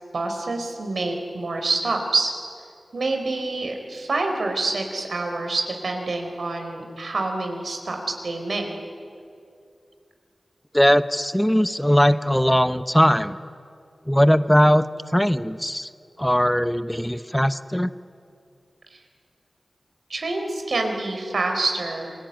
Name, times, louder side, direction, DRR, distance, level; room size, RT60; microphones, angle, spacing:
voice 1, 0.1-2.3 2.9-8.7 20.1-22.1, right 3 dB, 80° right, 4 dB, 4.1 m, -27 dB
voice 2, 10.7-13.4 14.1-14.8 15.1-15.9 16.2-17.9, equal, 5° left, 12 dB, 0.9 m, -19 dB
27.5 x 22.0 x 9.2 m, 2.5 s
wide cardioid pair, 55°, 0 cm